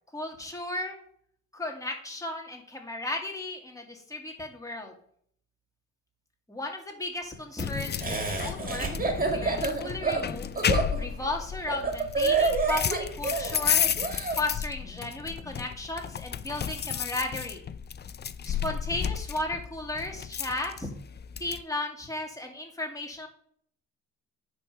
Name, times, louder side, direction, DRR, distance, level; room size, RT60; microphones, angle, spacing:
voice 1, 0.1-1.0 1.5-4.9 6.5-10.5 11.0-13.8 14.3-17.7 18.4-20.9 21.4-23.3, left 2 dB, 10° left, 1 dB, 2.2 m, -35 dB
sound 1, 7.6-21.6, left 8 dB, 35° left, 0.5 m, -32 dB
Laughter, 8.0-14.4, right 4 dB, 30° right, 2.0 m, -28 dB
9.7 x 3.5 x 5.8 m, 0.63 s
cardioid pair, 90°, 30 cm